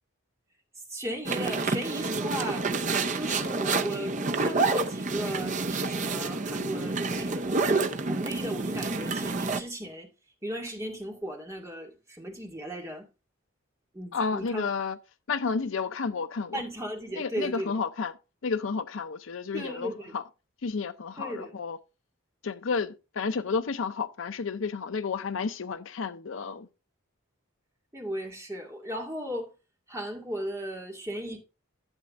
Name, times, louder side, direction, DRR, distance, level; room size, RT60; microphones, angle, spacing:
voice 1, 0.9-2.7 3.1-10.1 10.4-13.1 13.9-14.7 16.5-17.7 19.5-20.2 21.2-21.6 27.9-29.5 29.9-31.4, equal, 15° right, 2.2 m, -36 dB
sound 1, 1.2-9.6, right 3 dB, 35° right, 0.7 m, -28 dB
voice 2, 14.1-15.0 15.3-16.6 17.2-18.1 18.4-20.2 20.6-21.8 22.4-26.7, left 5 dB, 65° left, 0.5 m, -31 dB
11.5 x 7.9 x 2.5 m
head